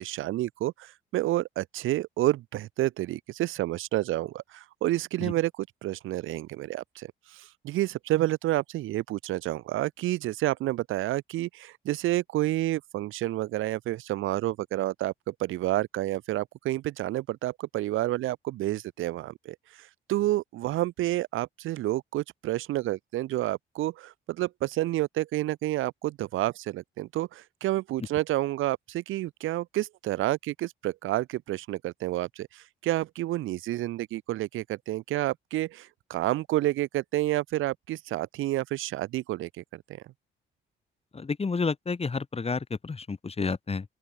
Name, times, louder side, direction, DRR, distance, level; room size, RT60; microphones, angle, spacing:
voice 1, 0.0-7.1 7.3-19.6 20.1-39.6 39.9-40.0, right 15 dB, 90° right, 4.2 m, -29 dB
voice 2, 41.1-43.8, left 4 dB, 30° left, 6.7 m, -30 dB
open air
cardioid pair, 90°, 20 cm